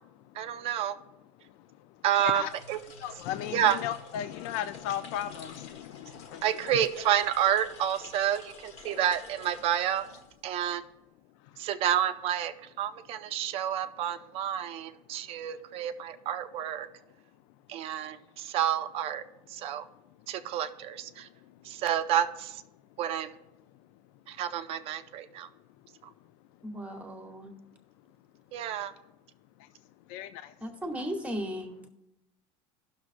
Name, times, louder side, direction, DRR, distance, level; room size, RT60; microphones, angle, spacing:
voice 1, 0.4-0.9 2.0-2.8 3.5-3.8 6.4-10.0 10.4-10.8 11.6-16.9 17.7-19.2 19.5-19.8 20.3-21.3 21.7-22.6 23.0-23.3 24.3-25.5 28.5-28.9, right 10 dB, 45° right, 11 dB, 0.5 m, -29 dB
voice 2, 2.1-2.5 3.0-6.0 6.3-6.9 30.1-30.3, left 11 dB, 80° left, 11 dB, 0.4 m, -35 dB
sound 1, 2.4-10.7, left 4 dB, 55° left, 1.2 m, -50 dB
voice 3, 26.6-27.5 30.6-31.8, equal, 10° right, 4 dB, 0.9 m, -36 dB
17.0 x 6.2 x 2.5 m, 0.90 s
cardioid pair, 165°, 14 cm